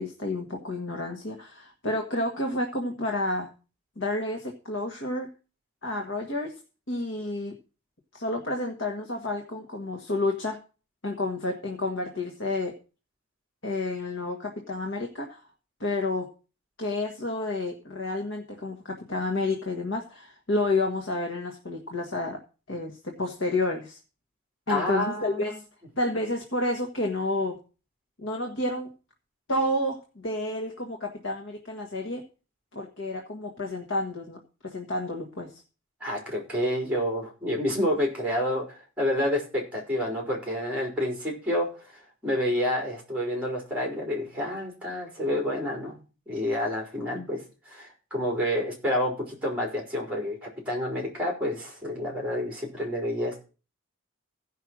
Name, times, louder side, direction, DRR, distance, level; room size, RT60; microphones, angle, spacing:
voice 1, 0.0-3.5 4.0-5.3 5.8-6.5 6.9-7.5 8.1-10.6 11.0-12.8 13.6-15.4 15.8-16.3 16.8-22.4 22.7-24.0 24.7-25.6 26.0-27.6 28.2-28.9 29.5-32.3 32.7-35.6 47.1-47.3, left 2 dB, 60° left, 2 dB, 1.6 m, -30 dB
voice 2, 24.7-25.4 36.0-41.7 42.2-46.0 46.3-53.4, left 1 dB, 5° right, 0 dB, 4.5 m, -29 dB
15.0 x 5.7 x 6.2 m, 0.35 s
head